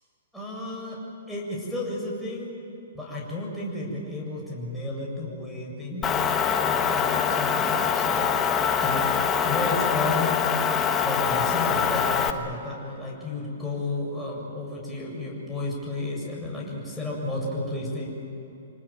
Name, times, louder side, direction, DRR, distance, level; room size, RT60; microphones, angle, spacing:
voice 1, 0.3-1.0 1.3-2.5 2.9-9.0 9.4-10.3 11.0-18.1, left 2 dB, ahead, -3 dB, 7.6 m, -32 dB
Motor vehicle (road) / Engine, 6.0-12.3, left 7 dB, 20° left, 1.5 m, -24 dB
27.0 x 19.5 x 9.4 m, 2.9 s
hypercardioid pair, 125°, 0 cm